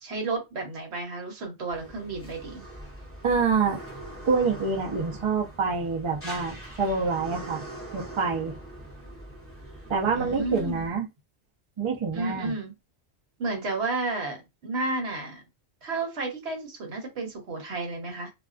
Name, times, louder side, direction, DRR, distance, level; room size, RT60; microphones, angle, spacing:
voice 1, 0.0-2.6 10.1-10.8 12.1-12.7 13.4-15.4 15.8-18.3, right 3 dB, 65° right, 1.1 m, -32 dB
sound 1, 1.7-10.9, right 1 dB, 15° left, 0.7 m, -42 dB
voice 2, 3.2-3.8 4.3-7.6 7.9-8.6 9.9-11.1 11.8-12.5, right 5 dB, 45° right, 0.4 m, -26 dB
2.4 x 2.2 x 2.4 m
omnidirectional pair, 1.2 m